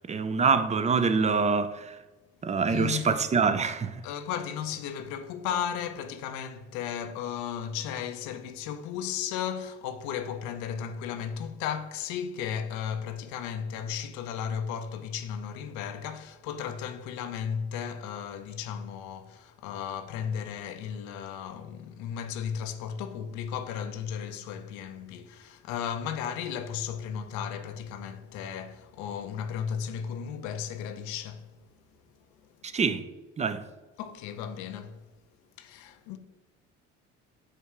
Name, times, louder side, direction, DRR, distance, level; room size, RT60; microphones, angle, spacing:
voice 1, 0.1-2.0 2.4-4.0 32.6-33.0 33.4-33.6, right 5 dB, 25° right, 0.5 m, -25 dB
voice 2, 2.7-3.3 4.0-31.5 34.0-35.0 35.6-36.2, left 8 dB, 80° left, 0.6 m, -35 dB
7.4 x 2.7 x 4.6 m
supercardioid pair, 75°, 29 cm